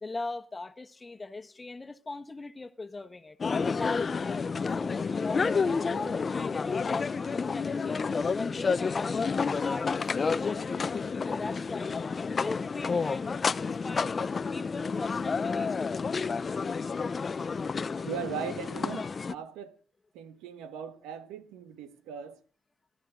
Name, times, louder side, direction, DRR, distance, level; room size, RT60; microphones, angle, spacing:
voice 1, 0.0-3.4 3.7-9.2 9.5-9.9 10.2-11.0 11.2-14.2 14.5-16.1, left 3 dB, 25° left, 1.4 m, -40 dB
sound 1, 3.4-19.3, left 5 dB, 40° left, 0.7 m, -30 dB
voice 2, 18.0-19.8 20.1-22.4, right 7 dB, 85° right, 1.2 m, -39 dB
17.0 x 12.0 x 3.8 m
supercardioid pair, 60°, 0 cm